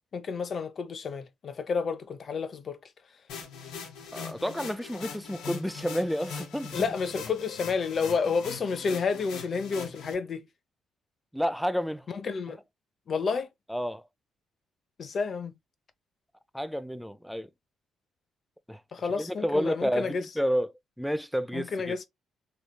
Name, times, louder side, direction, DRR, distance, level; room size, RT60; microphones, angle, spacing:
voice 1, 0.1-2.8 6.7-10.5 12.1-12.6 13.1-13.5 15.0-15.5 18.9-20.2 21.5-22.1, left 5 dB, 50° left, 0.7 m, -30 dB
sound 1, 3.3-10.1, left 6 dB, 90° left, 1.2 m, -41 dB
voice 2, 4.1-6.9 11.3-12.1 13.7-14.0 16.5-17.5 18.7-22.0, equal, ahead, 0.4 m, -30 dB
3.1 x 3.0 x 2.2 m
cardioid pair, 90°, 0 cm